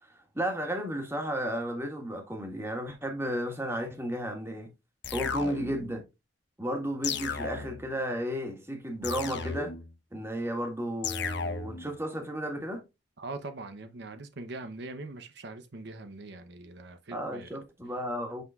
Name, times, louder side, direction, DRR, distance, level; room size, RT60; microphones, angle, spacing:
voice 1, 0.1-4.7 5.1-6.0 6.6-9.7 10.1-12.8 17.1-18.4, equal, 15° right, 1.7 m, -33 dB
sound 1, 5.0-5.9 7.0-7.9 9.0-9.9 11.0-11.9, left 5 dB, 65° left, 0.9 m, -34 dB
voice 2, 13.2-17.6, right 2 dB, 60° right, 0.8 m, -42 dB
8.4 x 5.7 x 2.4 m
head